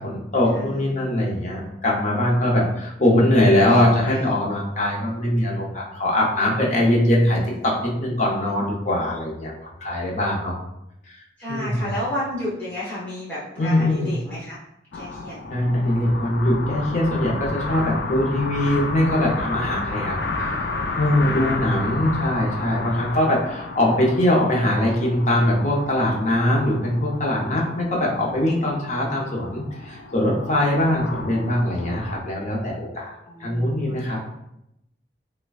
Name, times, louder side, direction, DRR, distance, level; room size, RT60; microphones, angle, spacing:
voice 1, 0.0-10.5 11.1-11.2 11.5-11.9 13.6-14.2 15.5-20.5 21.0-34.2, left 1 dB, 40° left, -2 dB, 0.8 m, -22 dB
voice 2, 0.5-1.2 3.7-4.2 11.4-14.5 14.9-15.3 19.7-20.3 21.0-21.7 33.3-34.1, left 1 dB, 10° left, -11 dB, 0.9 m, -33 dB
sound 1, 14.9-32.2, left 3 dB, 65° left, 0.4 m, -32 dB
4.9 x 2.2 x 2.4 m, 0.81 s
head